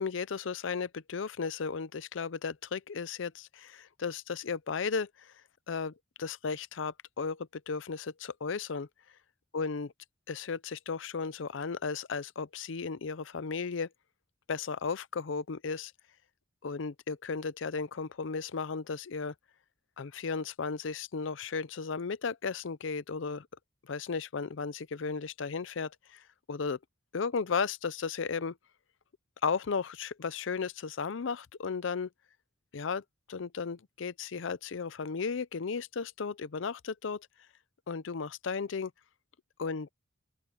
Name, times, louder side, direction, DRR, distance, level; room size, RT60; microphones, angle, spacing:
voice 1, 0.0-5.3 5.7-8.9 9.5-9.9 10.3-13.9 14.5-15.9 16.6-19.3 20.0-23.5 23.8-26.8 27.1-28.6 29.4-32.1 32.7-37.3 37.9-38.9 39.6-39.9, left 5 dB, 70° left, 0.6 m, -35 dB
open air
head